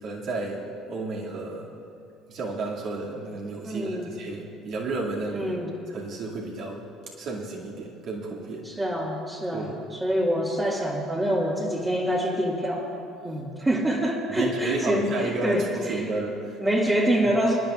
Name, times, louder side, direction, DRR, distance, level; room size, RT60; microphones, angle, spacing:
voice 1, 0.0-0.6 0.9-1.7 2.3-5.6 5.9-6.8 7.2-8.6 9.5-9.7 14.3-16.6, right 3 dB, 55° right, -3 dB, 2.3 m, -32 dB
voice 2, 3.6-4.1 5.3-5.7 8.6-12.9 13.2-16.0 16.6-17.6, equal, 15° right, -5 dB, 1.9 m, -26 dB
23.0 x 11.0 x 2.5 m, 2.6 s
hypercardioid pair, 60°, 0 cm